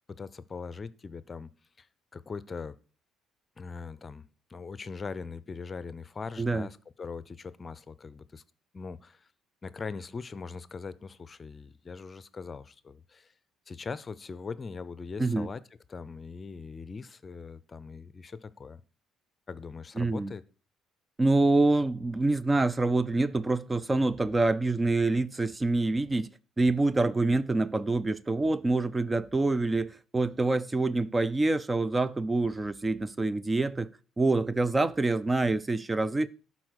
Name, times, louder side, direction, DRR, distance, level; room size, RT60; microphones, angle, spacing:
voice 1, 0.0-1.5 1.8-1.9 2.1-2.7 3.6-8.4 8.7-9.3 9.6-13.3 13.7-15.6 15.9-18.8 19.5-20.4, left 5 dB, 35° left, 0.6 m, -41 dB
voice 2, 20.0-20.3 21.2-26.3 26.6-33.9 34.2-36.3, right 2 dB, 20° right, 0.5 m, -26 dB
11.5 x 4.2 x 6.3 m
supercardioid pair, 70°, 0 cm